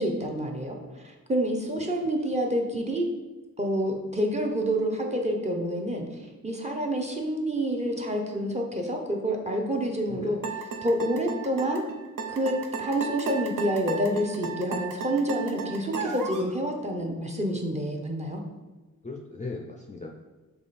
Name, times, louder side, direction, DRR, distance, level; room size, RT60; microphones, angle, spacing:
voice 1, 0.0-3.1 3.6-10.4 10.8-11.8 12.3-18.4, right 1 dB, 20° right, 1 dB, 0.7 m, -28 dB
voice 2, 10.1-10.4 19.0-20.1, left 3 dB, 20° left, 0 dB, 0.4 m, -38 dB
sound 1, 10.4-16.5, right 5 dB, 65° right, 0.6 m, -34 dB
3.6 x 3.2 x 4.1 m, 1.2 s
cardioid pair, 80°, 34 cm